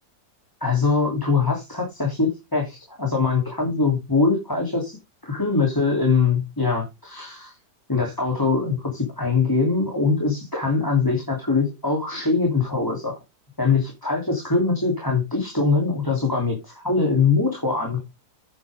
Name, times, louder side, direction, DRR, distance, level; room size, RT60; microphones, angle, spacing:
voice 1, 0.6-5.0 5.2-7.6 7.9-13.2 13.6-18.0, left 4 dB, 10° left, 0 dB, 3.1 m, -22 dB
10.0 x 9.2 x 3.6 m, 0.24 s
omnidirectional pair, 1.8 m